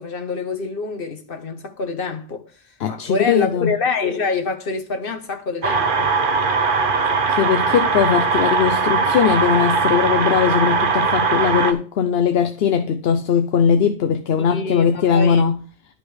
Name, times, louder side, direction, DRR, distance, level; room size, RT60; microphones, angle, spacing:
voice 1, 0.0-2.5 2.9-6.1 14.5-15.4, left 4 dB, 60° left, 1.5 m, -26 dB
voice 2, 2.8-3.8 7.3-15.6, left 7 dB, 75° left, 0.9 m, -19 dB
sound 1, 5.6-11.7, right 4 dB, 55° right, 1.1 m, -20 dB
11.5 x 5.4 x 5.0 m
omnidirectional pair, 1.1 m